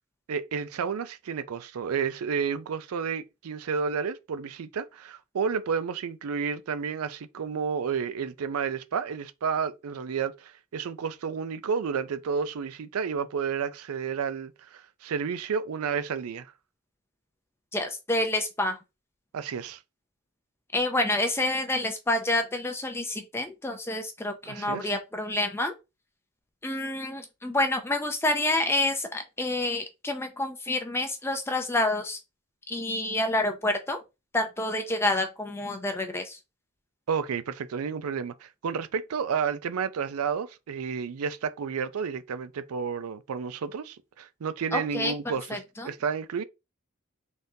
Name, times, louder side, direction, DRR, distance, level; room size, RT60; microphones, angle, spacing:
voice 1, 0.3-16.5 19.3-19.8 24.4-24.9 37.1-46.4, right 6 dB, 85° right, 0.4 m, -31 dB
voice 2, 17.7-18.8 20.7-25.7 26.6-32.2 32.7-34.0 34.3-36.4 44.7-45.1 45.5-45.9, left 2 dB, 10° left, 0.4 m, -28 dB
3.9 x 3.6 x 2.7 m
head